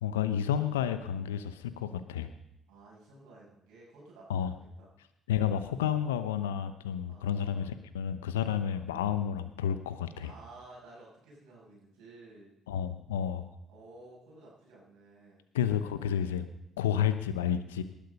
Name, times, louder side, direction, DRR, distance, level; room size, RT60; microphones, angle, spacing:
voice 1, 0.0-2.3 4.3-4.5 5.3-10.3 12.7-13.5 15.5-16.5 16.8-17.8, left 9 dB, 85° left, 11 dB, 0.9 m, -31 dB
voice 2, 2.7-4.9 7.1-7.7 8.6-8.8 10.2-12.5 13.7-15.4, right 2 dB, 75° right, -4 dB, 7.5 m, -54 dB
19.0 x 12.0 x 5.4 m, 0.84 s
hypercardioid pair, 50°, 0 cm